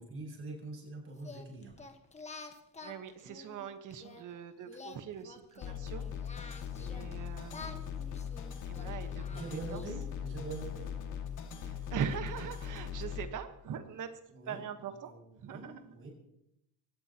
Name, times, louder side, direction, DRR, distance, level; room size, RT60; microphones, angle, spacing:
voice 1, 0.0-1.8 6.8-6.9 9.3-10.9 14.3-16.1, right 3 dB, 35° right, 0 dB, 7.2 m, -44 dB
Singing, 1.2-4.2 4.7-7.1 7.5-10.1, left 4 dB, 20° left, 1.3 m, -50 dB
voice 2, 2.8-6.1 6.4-6.6 6.9-9.2 9.7-9.8 11.6-14.2 14.4-15.1 15.4-15.8, right 8 dB, 55° right, 8 dB, 1.4 m, -42 dB
sound 1, 5.6-13.3, left 8 dB, 55° left, 2.2 m, -40 dB
23.0 x 18.5 x 3.0 m, 0.78 s
cardioid pair, 150°, 36 cm